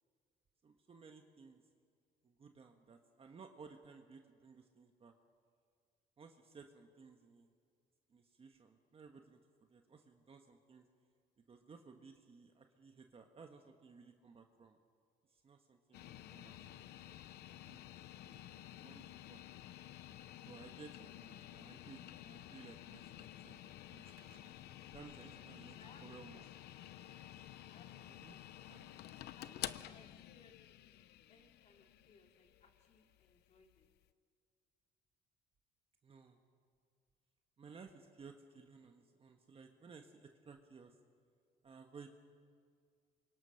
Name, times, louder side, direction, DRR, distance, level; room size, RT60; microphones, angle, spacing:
voice 1, 0.6-1.6 2.2-5.1 6.2-7.5 8.1-9.4 9.7-10.9 11.5-14.8 15.3-16.8 17.6-17.8 18.3-18.4 18.8-19.4 20.4-23.6 23.9-24.1 24.9-26.4 28.1-28.4 36.0-36.4 37.6-40.9 41.6-42.1, right 5 dB, 35° right, 4 dB, 1.5 m, -58 dB
sound 1, 15.9-34.0, left 13 dB, 75° left, 0.8 m, -52 dB
sound 2, 24.0-25.0 25.3-25.4 26.4-26.5 27.4-27.5 28.1-29.5 30.3-30.4, right 8 dB, 70° right, 1.8 m, -69 dB
voice 2, 25.8-27.1 27.7-28.8 29.4-30.6 31.3-33.9, left 4 dB, 40° left, 2 dB, 3.5 m, -65 dB
27.0 x 24.0 x 5.9 m, 2.1 s
cardioid pair, 110°, 17 cm